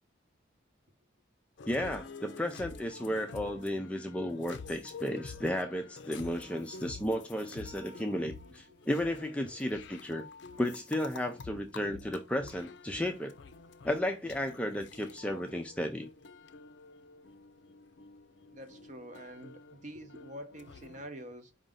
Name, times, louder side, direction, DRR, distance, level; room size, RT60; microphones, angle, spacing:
sound 1, 1.6-21.0, left 4 dB, 65° left, 0.5 m, -49 dB
voice 1, 1.7-10.2 10.6-13.3 13.8-16.1, left 1 dB, 5° left, 0.4 m, -33 dB
voice 2, 18.4-21.5, equal, 35° right, 0.7 m, -46 dB
4.9 x 2.6 x 3.6 m
head